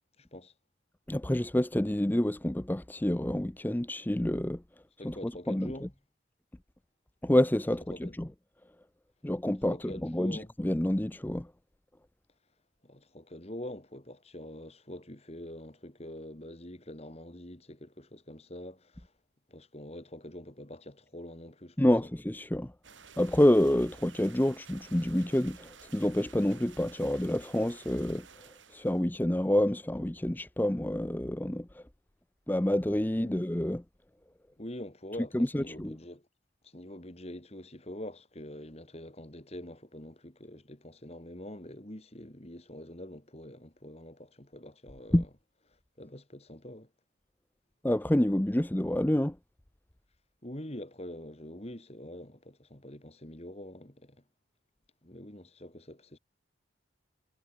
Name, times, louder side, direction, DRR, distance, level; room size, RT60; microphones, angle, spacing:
voice 1, 0.2-0.5 5.0-5.9 7.9-8.1 9.7-10.5 12.8-19.1 19.5-21.9 33.2-33.4 34.6-36.3 36.6-45.3 46.0-46.9 50.4-54.2 55.0-56.2, left 1 dB, 35° left, 2.6 m, -45 dB
voice 2, 1.1-4.6 5.0-5.9 7.2-8.3 9.2-11.5 21.8-22.7 23.2-28.3 28.7-31.8 32.5-33.8 35.3-36.0 45.1-45.2 47.8-49.4, left 1 dB, 10° left, 0.5 m, -28 dB
sound 1, 22.8-29.0, right 6 dB, 80° right, 7.3 m, -54 dB
head